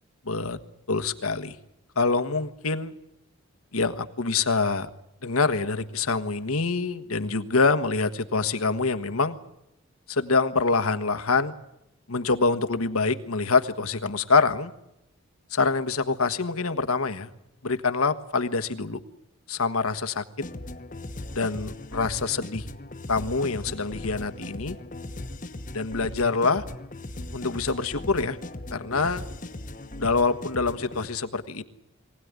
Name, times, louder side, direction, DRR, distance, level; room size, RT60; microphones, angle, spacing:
voice 1, 0.3-0.6 0.9-1.6 1.9-2.9 3.7-4.9 5.2-9.3 10.1-11.5 12.1-14.7 15.5-17.3 17.6-19.0 19.5-20.2 21.3-22.7 23.1-24.8 25.7-26.6 27.3-28.4 28.7-29.2 30.0-31.6, left 4 dB, 85° left, 9 dB, 1.4 m, -25 dB
sound 1, 20.4-31.1, left 1 dB, 35° left, 1.1 m, -38 dB
23.5 x 18.0 x 9.7 m, 0.87 s
head